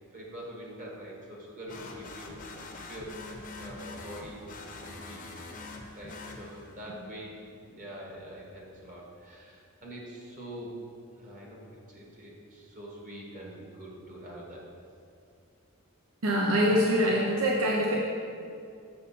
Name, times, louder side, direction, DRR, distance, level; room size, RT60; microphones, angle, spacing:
voice 1, 0.1-2.4 2.9-3.1 3.6-4.5 4.8-5.2 5.9-7.4 7.7-10.8 11.1-14.7, equal, 35° right, -3 dB, 1.5 m, -44 dB
sound 1, 1.7-6.9, left 3 dB, 35° left, 0.7 m, -44 dB
voice 2, 16.2-18.0, equal, 75° right, -2 dB, 0.7 m, -24 dB
6.8 x 6.5 x 4.2 m, 2.4 s
head